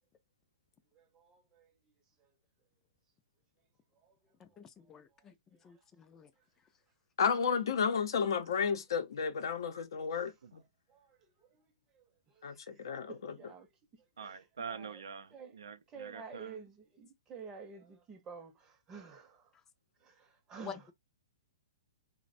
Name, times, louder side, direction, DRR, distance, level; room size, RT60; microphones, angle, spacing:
voice 1, 4.4-5.3 5.6-6.3 20.6-20.9, left 6 dB, 20° left, 0.4 m, -48 dB
voice 2, 7.2-10.6 12.4-13.5, left 6 dB, 70° left, 0.6 m, -32 dB
voice 3, 13.3-13.7 14.2-14.3 14.7-15.0 15.3-15.5 15.9-19.4 20.5-20.8, right 5 dB, 20° right, 0.6 m, -48 dB
voice 4, 14.2-16.6, right 6 dB, 85° right, 0.4 m, -45 dB
3.2 x 2.1 x 2.5 m
hypercardioid pair, 140°, 2 cm